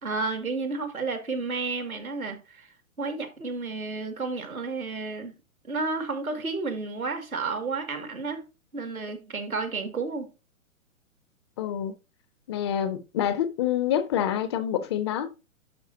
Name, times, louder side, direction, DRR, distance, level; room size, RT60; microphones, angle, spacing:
voice 1, 0.0-2.7 3.0-5.3 5.6-8.4 8.7-10.3, right 3 dB, 80° right, 2.3 m, -31 dB
voice 2, 11.6-11.9 12.5-15.3, left 10 dB, 20° left, 0.5 m, -27 dB
11.0 x 5.2 x 2.8 m
figure-of-eight pair, 120°, 42 cm